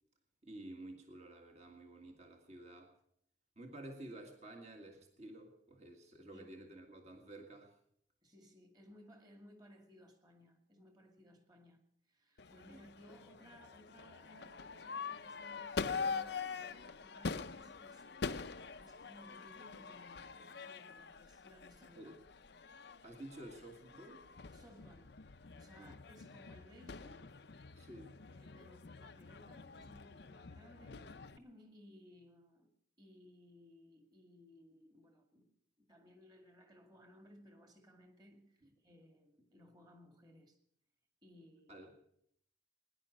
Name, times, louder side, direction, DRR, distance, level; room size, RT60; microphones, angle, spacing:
voice 1, 0.4-2.9 3.6-7.7 12.7-12.8 22.0-22.2 23.0-24.2 25.8-25.9 27.8-28.2 38.6-38.7 41.7-41.9, right 1 dB, 35° right, 1.9 m, -52 dB
voice 2, 8.2-11.8 12.1-18.5 18.7-22.2 24.5-25.1 25.5-27.9 28.3-31.1 31.4-32.7 33.0-35.5 35.8-40.6 41.2-41.9, equal, 20° right, 2.2 m, -61 dB
Crowd / Fireworks, 12.4-31.4, left 5 dB, 60° left, 0.6 m, -45 dB
19.0 x 10.5 x 6.4 m
head